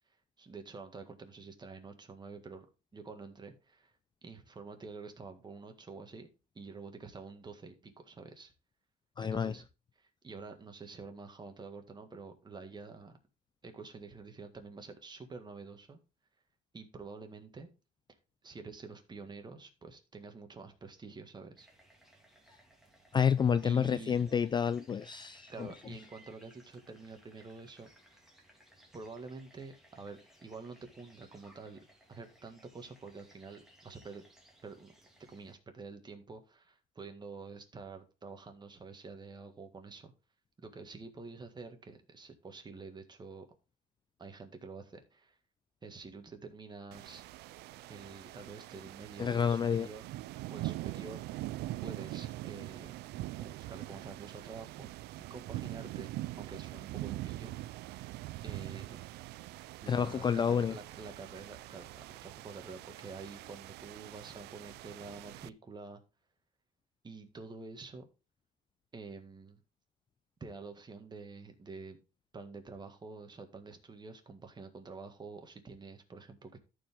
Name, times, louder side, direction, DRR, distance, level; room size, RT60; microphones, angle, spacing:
voice 1, 0.4-2.7 2.9-3.9 4.2-6.3 6.6-8.5 9.2-9.7 10.0-13.2 13.6-16.0 16.7-17.7 18.4-21.7 23.6-24.1 25.5-28.2 28.9-31.8 32.1-34.2 34.6-34.9 35.3-40.1 40.6-43.5 44.2-45.4 45.8-47.3 47.9-50.0 50.5-51.2 51.8-52.9 53.4-54.9 55.2-56.1 56.4-57.5 58.4-59.1 59.8-66.0 67.0-68.1 68.9-69.6 70.4-72.0 72.3-76.6, right 4 dB, 25° right, 1.8 m, -48 dB
voice 2, 9.2-9.5 23.1-25.5 49.2-49.9 59.9-60.8, left 7 dB, 25° left, 0.3 m, -29 dB
sound 1, 21.6-35.5, right 1 dB, ahead, 2.3 m, -62 dB
sound 2, 46.9-65.5, right 17 dB, 80° right, 0.4 m, -43 dB
13.5 x 4.8 x 3.7 m
cardioid pair, 110°, 17 cm